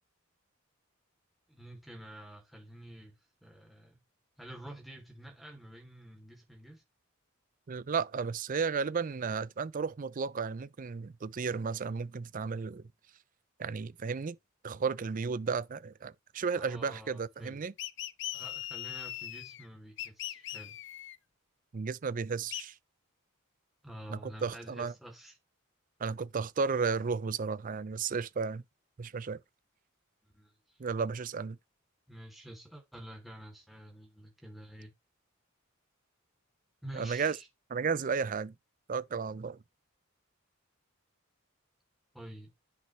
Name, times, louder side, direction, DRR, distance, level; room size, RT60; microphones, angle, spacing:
voice 1, 1.5-4.0 4.4-6.8 16.6-17.6 18.3-20.8 23.8-25.4 30.2-30.8 32.1-34.9 36.8-37.5 42.1-42.5, right 1 dB, ahead, 2.7 m, -49 dB
voice 2, 7.7-12.8 13.6-14.4 14.6-17.7 21.7-22.7 24.1-24.9 26.0-28.6 29.0-29.4 30.8-31.6 36.9-37.4 37.7-38.5 38.9-39.6, right 5 dB, 40° right, 0.4 m, -33 dB
sound 1, 17.8-19.6 20.0-21.2 22.5-22.6, left 14 dB, 60° left, 0.5 m, -40 dB
10.5 x 6.2 x 3.1 m
head